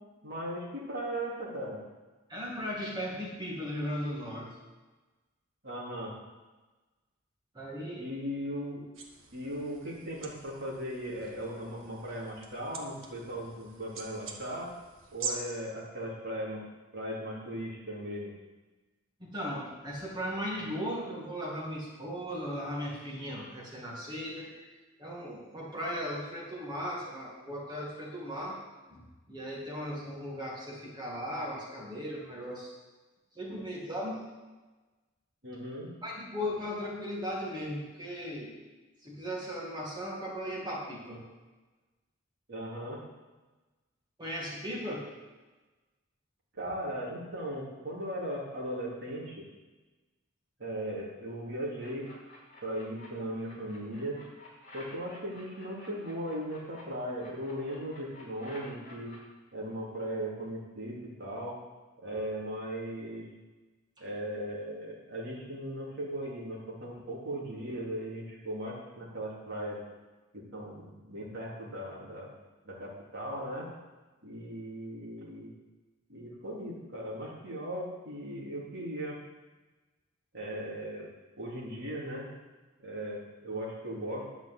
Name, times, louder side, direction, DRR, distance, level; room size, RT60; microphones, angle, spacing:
voice 1, 0.2-1.8 5.6-6.1 8.0-8.9 9.3-14.7 15.1-16.6 16.9-18.3 35.4-35.9 42.5-43.0 46.5-49.4 50.6-52.1 52.6-54.2 54.7-59.1 59.5-61.6 62.0-63.3 64.0-69.8 70.3-72.3 72.6-73.7 74.2-75.5 76.1-79.2 80.3-81.1 81.4-82.3 82.8-84.3, equal, 55° right, -5 dB, 3.5 m, -38 dB
voice 2, 2.3-4.5 7.5-8.0 19.2-24.6 25.0-28.6 28.9-32.7 33.4-34.2 36.0-38.5 39.0-41.2 44.2-45.1, equal, 20° right, -4 dB, 2.2 m, -37 dB
sound 1, 8.9-15.3, right 6 dB, 70° right, 1.4 m, -45 dB
sound 2, 51.8-53.1 53.4-56.8 57.2-59.2, left 2 dB, 40° left, 3.6 m, -52 dB
11.0 x 6.0 x 7.9 m, 1.2 s
head